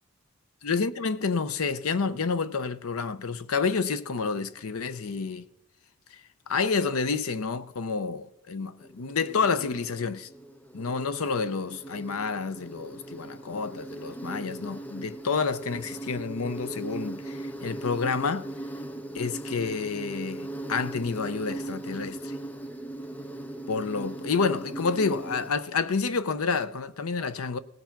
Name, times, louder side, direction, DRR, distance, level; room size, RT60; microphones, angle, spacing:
voice 1, 0.6-5.5 6.1-6.2 6.5-10.3 10.7-18.5 19.1-22.3 23.7-27.6, left 5 dB, 90° left, 0.6 m, -29 dB
Insect, 8.8-25.5, right 2 dB, 5° left, 0.5 m, -39 dB
18.0 x 6.9 x 5.8 m
head